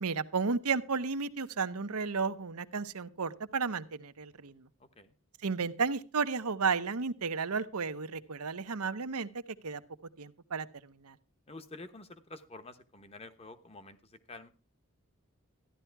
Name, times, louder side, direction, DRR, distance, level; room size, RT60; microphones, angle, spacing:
voice 1, 0.0-4.7 5.4-9.3 9.6-9.8 10.2-11.2, right 5 dB, 90° right, 11 dB, 0.9 m, -33 dB
voice 2, 4.8-5.1 11.5-14.5, left 2 dB, 25° left, 10 dB, 1.0 m, -49 dB
14.0 x 11.0 x 4.6 m, 0.33 s
head